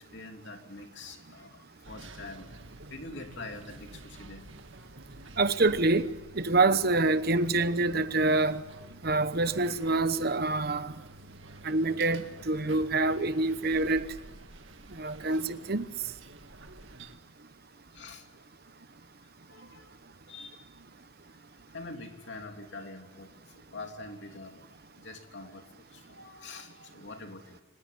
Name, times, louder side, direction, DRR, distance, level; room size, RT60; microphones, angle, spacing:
voice 1, 0.0-2.5 2.9-4.5 10.1-10.2 15.3-15.4 17.9-18.3 19.2-19.9 20.3-20.6 21.7-27.6, left 2 dB, 55° left, 3.3 m, -45 dB
sound 1, 1.8-17.2, right 2 dB, 65° right, 1.8 m, -49 dB
voice 2, 5.4-8.6 9.0-10.9 11.6-14.1 14.9-15.9, right 2 dB, 50° right, 1.0 m, -26 dB
25.0 x 19.5 x 9.5 m
head